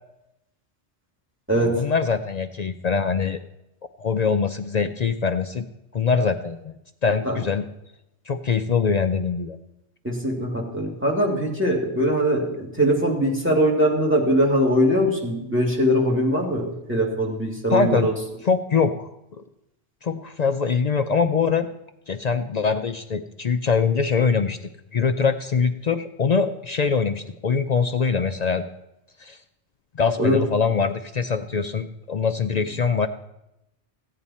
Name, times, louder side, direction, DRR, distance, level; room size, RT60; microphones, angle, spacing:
voice 1, 1.6-3.4 4.0-5.7 5.9-6.7 7.0-7.6 8.3-9.6 17.7-18.1 18.4-19.1 19.4-19.5 20.0-21.7 22.1-28.6 29.2-29.4 29.9-33.1, left 5 dB, 55° left, 8 dB, 0.5 m, -23 dB
voice 2, 10.0-18.1 30.2-30.4, equal, 10° right, -1 dB, 2.3 m, -21 dB
15.5 x 8.9 x 4.2 m, 0.88 s
omnidirectional pair, 1.2 m